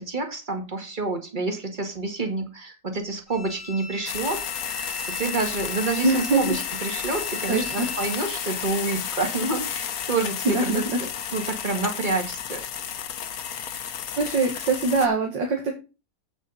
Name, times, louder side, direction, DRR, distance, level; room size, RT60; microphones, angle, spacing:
voice 1, 0.0-4.9 5.2-12.6, right 3 dB, 25° right, 4 dB, 2.1 m, -28 dB
Bowed string instrument, 3.3-8.2, left 1 dB, ahead, 1.6 m, -39 dB
sound 1, 4.1-15.1, left 8 dB, 60° left, 1.3 m, -32 dB
voice 2, 6.0-6.4 7.5-7.9 10.5-11.0 14.2-15.7, right 3 dB, 90° right, 2 dB, 2.5 m, -23 dB
8.7 x 8.5 x 4.1 m, 0.30 s
omnidirectional pair, 1.9 m